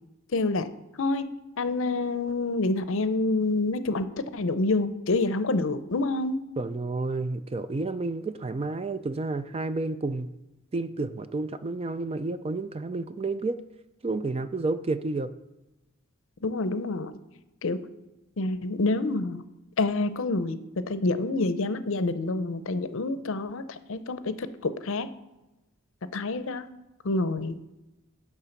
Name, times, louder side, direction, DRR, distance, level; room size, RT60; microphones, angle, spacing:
voice 1, 0.3-0.7 1.0-1.3 1.6-6.4 16.4-17.1 17.6-17.8 18.4-19.4 19.8-25.1 26.1-26.6 27.0-27.6, left 2 dB, 65° left, 12 dB, 0.6 m, -27 dB
voice 2, 6.6-10.3 10.7-13.6 14.0-15.3, right 3 dB, 25° right, 11 dB, 0.3 m, -30 dB
11.0 x 3.6 x 7.1 m, 1.0 s
head